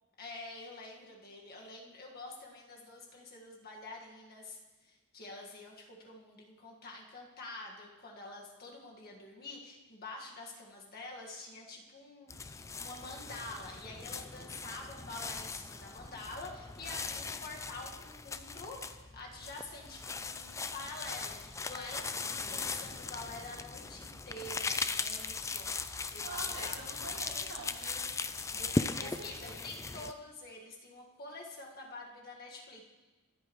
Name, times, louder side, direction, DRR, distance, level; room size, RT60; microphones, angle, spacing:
voice 1, 0.2-25.8 26.1-26.7 28.5-32.8, left 2 dB, 45° left, -1 dB, 1.7 m, -47 dB
sound 1, 12.3-30.1, left 4 dB, 15° left, 0.3 m, -39 dB
voice 2, 22.1-22.6 26.2-28.0 28.6-29.6, right 3 dB, 75° right, -5 dB, 3.5 m, -47 dB
23.0 x 8.4 x 3.1 m, 1.2 s
head